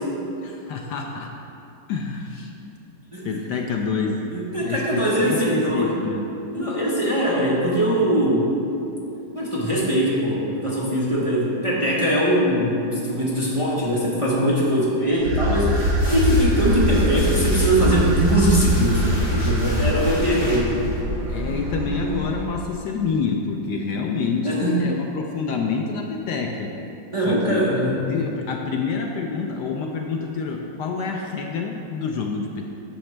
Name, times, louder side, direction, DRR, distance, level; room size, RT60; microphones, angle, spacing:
voice 1, 0.4-1.3 1.9-2.5 3.2-4.2 4.6-6.3 19.8-20.3 21.3-26.7 27.2-27.6 28.0-32.7, left 5 dB, 70° left, 2 dB, 1.1 m, -27 dB
voice 2, 4.3-6.0 6.5-8.5 9.3-15.8 16.1-20.9 24.4-24.8 27.1-28.1, right 1 dB, 20° right, -7 dB, 1.0 m, -21 dB
sound 1, 15.1-21.0, left 1 dB, 40° left, 1.7 m, -35 dB
sound 2, 15.2-22.4, equal, 75° right, 1.9 m, -23 dB
10.0 x 6.8 x 3.3 m, 2.8 s
omnidirectional pair, 2.0 m